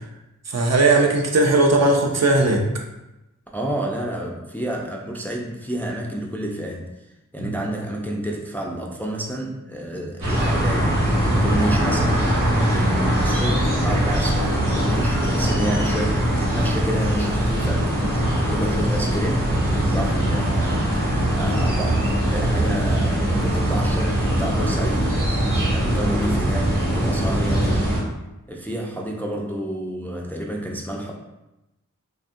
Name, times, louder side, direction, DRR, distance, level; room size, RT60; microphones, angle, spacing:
voice 1, 0.5-2.6 7.4-7.5, right 2 dB, 55° right, 1 dB, 0.5 m, -18 dB
voice 2, 3.5-6.9 7.3-17.9 18.4-27.9 28.5-31.1, right 1 dB, 5° left, -1 dB, 0.3 m, -30 dB
sound 1, 10.2-28.0, right 1 dB, 90° right, 1.0 m, -21 dB
2.6 x 2.4 x 2.6 m, 0.96 s
wide cardioid pair, 50°, 32 cm